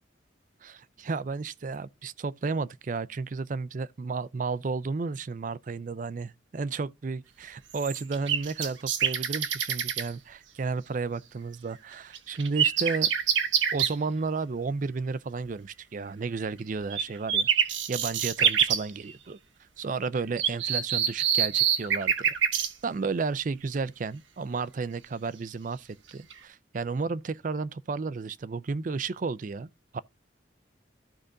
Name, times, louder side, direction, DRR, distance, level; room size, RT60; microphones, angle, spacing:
voice 1, 0.6-13.1 13.7-17.5 17.9-19.4 19.8-22.3 22.8-29.7 29.9-30.0, right 4 dB, 45° right, 0.4 m, -32 dB
sound 1, 7.7-10.1 12.1-13.9 16.9-17.0 17.3-18.8 20.4-22.7 26.1-26.3, right 8 dB, 80° right, 1.0 m, -26 dB
14.5 x 4.9 x 2.6 m
head